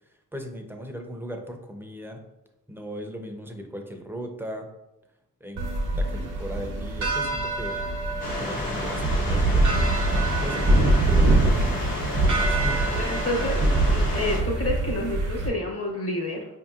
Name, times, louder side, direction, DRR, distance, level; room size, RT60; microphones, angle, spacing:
voice 1, 0.0-2.2 2.7-4.7 5.4-5.6 6.0-7.7 8.2-9.9 10.4-11.8 12.5-12.9, equal, 5° right, 3 dB, 0.6 m, -37 dB
sound 1, 5.6-15.5, right 2 dB, 60° right, 0.8 m, -24 dB
sound 2, 8.2-14.4, left 1 dB, 80° left, 1.3 m, -32 dB
voice 2, 12.9-16.5, left 1 dB, 45° left, 0 dB, 1.0 m, -29 dB
4.9 x 2.8 x 2.4 m, 0.90 s
cardioid pair, 75°, 33 cm